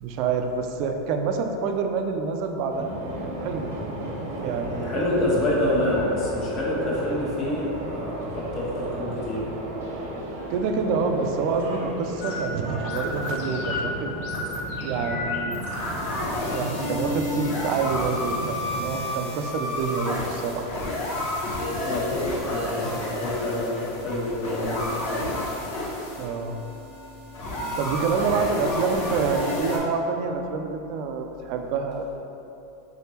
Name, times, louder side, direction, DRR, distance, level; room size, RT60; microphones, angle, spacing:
voice 1, 0.0-3.7 4.4-5.0 10.5-14.1 14.8-15.6 16.5-20.7 26.2-26.6 27.8-32.2, right 5 dB, 55° right, 5 dB, 0.4 m, -27 dB
sound 1, 2.7-19.0, right 1 dB, 85° right, 0.8 m, -34 dB
voice 2, 4.8-9.5 21.8-25.3, left 1 dB, 45° left, -5 dB, 1.1 m, -27 dB
sound 2, 12.2-29.8, left 1 dB, 75° left, 1.0 m, -31 dB
3.8 x 3.5 x 2.8 m, 2.9 s
supercardioid pair, 120°, 0 cm